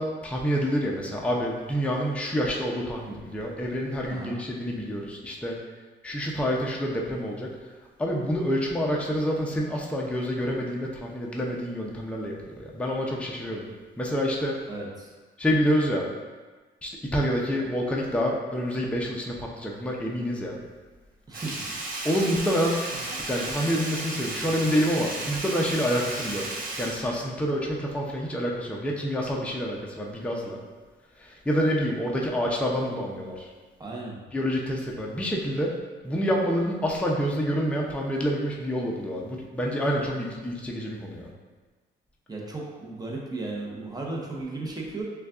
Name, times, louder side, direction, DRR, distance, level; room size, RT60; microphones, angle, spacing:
voice 1, 0.0-5.6 6.0-7.5 8.0-13.7 14.0-14.6 15.4-16.1 16.8-20.6 22.0-26.5 26.8-30.6 31.2-33.5 34.3-35.7 36.0-41.3, equal, 5° left, -2 dB, 0.6 m, -27 dB
voice 2, 14.7-15.1 21.3-21.6 33.8-34.2 42.3-45.0, right 2 dB, 20° right, -2 dB, 0.8 m, -35 dB
Sink (filling or washing), 21.3-27.9 28.2-28.3, right 2 dB, 45° right, 0.8 m, -34 dB
6.2 x 2.3 x 2.4 m, 1.3 s
cardioid pair, 90°, 20 cm